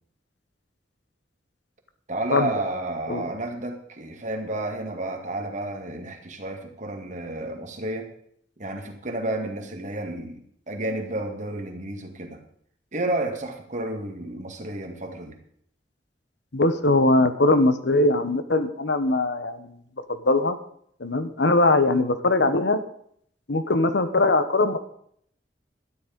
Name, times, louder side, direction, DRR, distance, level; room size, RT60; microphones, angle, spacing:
voice 1, 2.1-8.1 8.6-12.4 12.9-15.4, right 1 dB, 45° right, 4 dB, 2.1 m, -31 dB
voice 2, 16.5-19.8 20.2-20.6 21.0-22.8 23.5-24.8, left 2 dB, 75° left, 10 dB, 1.1 m, -21 dB
12.5 x 10.0 x 5.2 m, 0.65 s
head